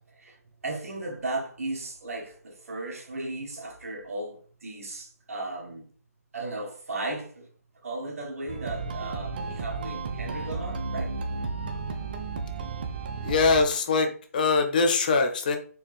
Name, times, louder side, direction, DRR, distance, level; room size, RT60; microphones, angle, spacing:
voice 1, 0.0-5.9 6.3-7.5 7.7-11.2, right 2 dB, 65° right, 1.2 m, -36 dB
sound 1, 8.5-13.6, right 4 dB, 35° right, 0.5 m, -33 dB
voice 2, 13.2-15.6, left 4 dB, 30° left, 0.5 m, -23 dB
4.3 x 2.8 x 3.3 m
figure-of-eight pair, 155°, 9 cm